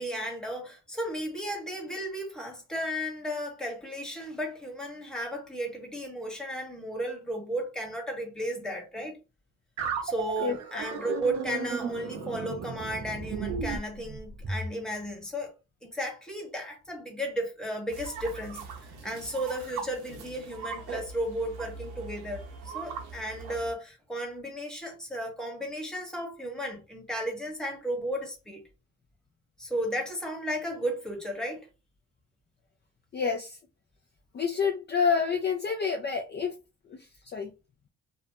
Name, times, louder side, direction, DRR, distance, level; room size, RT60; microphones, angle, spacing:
voice 1, 0.0-9.2 10.0-15.5 15.8-18.7 19.0-28.6 29.6-31.7, equal, ahead, 1.2 m, -34 dB
sound 1, 9.8-14.7, right 5 dB, 60° right, 0.8 m, -34 dB
sound 2, 17.9-23.7, right 5 dB, 90° right, 0.9 m, -41 dB
voice 2, 33.1-33.6 34.3-36.6 36.9-37.5, left 6 dB, 35° left, 0.4 m, -28 dB
2.7 x 2.2 x 2.7 m
cardioid pair, 90°, 30 cm